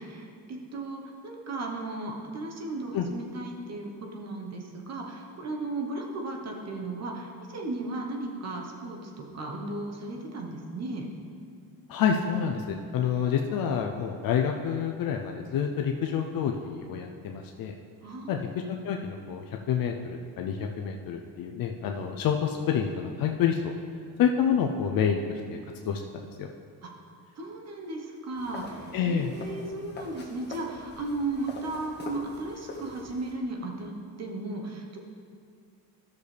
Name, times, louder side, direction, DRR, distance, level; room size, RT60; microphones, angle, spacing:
voice 1, 0.0-11.1 18.0-18.5 26.8-26.9 27.4-35.0, right 2 dB, 40° right, 1 dB, 1.2 m, -35 dB
voice 2, 11.9-17.7 18.3-18.4 18.7-23.7 24.2-25.2 25.5-25.6 25.9-26.5 28.9-29.3, left 7 dB, 60° left, 3 dB, 0.6 m, -28 dB
sound 1, 28.3-33.3, left 2 dB, 25° left, 1.6 m, -44 dB
13.0 x 6.6 x 3.4 m, 2.3 s
cardioid pair, 120°, 39 cm